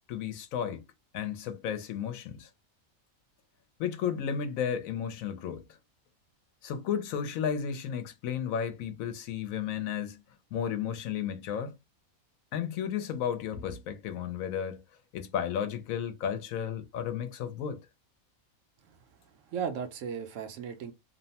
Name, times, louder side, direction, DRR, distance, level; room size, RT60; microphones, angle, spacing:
voice 1, 0.1-0.8 1.1-2.5 3.8-5.6 6.6-10.2 10.5-11.7 12.5-14.8 15.1-17.8, left 8 dB, 75° left, 1.0 m, -33 dB
voice 2, 19.3-20.9, right 7 dB, 70° right, 0.9 m, -36 dB
2.9 x 2.1 x 2.7 m
omnidirectional pair, 1.5 m